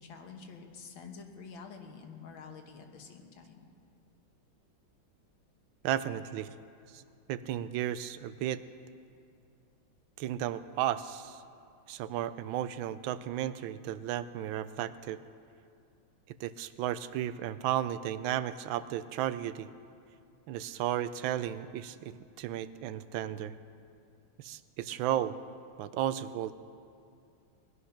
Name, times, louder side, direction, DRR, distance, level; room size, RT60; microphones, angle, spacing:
voice 1, 0.0-3.6, left 5 dB, 80° left, 4 dB, 2.0 m, -48 dB
voice 2, 5.8-6.5 6.9-7.0 7.3-8.6 10.2-11.4 11.9-15.2 16.4-19.7 20.5-23.5 24.4-25.3 25.8-26.5, right 11 dB, 85° right, 14 dB, 1.4 m, -34 dB
20.0 x 11.0 x 5.8 m, 2.4 s
omnidirectional pair, 2.1 m